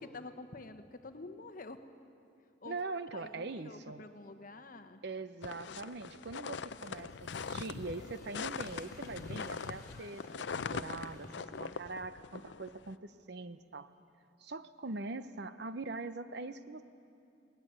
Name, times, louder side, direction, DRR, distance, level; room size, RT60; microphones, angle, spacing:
voice 1, 0.0-1.8 2.6-2.8 3.1-5.0, left 3 dB, 45° left, 9 dB, 1.0 m, -48 dB
voice 2, 2.6-4.0 5.0-10.2 10.5-13.9 14.4-16.8, right 3 dB, 60° right, 12 dB, 0.8 m, -42 dB
sound 1, 5.4-12.9, left 5 dB, 70° left, 0.5 m, -42 dB
sound 2, 6.8-11.7, left 2 dB, 20° left, 3.0 m, -57 dB
21.0 x 18.5 x 8.8 m, 2.6 s
head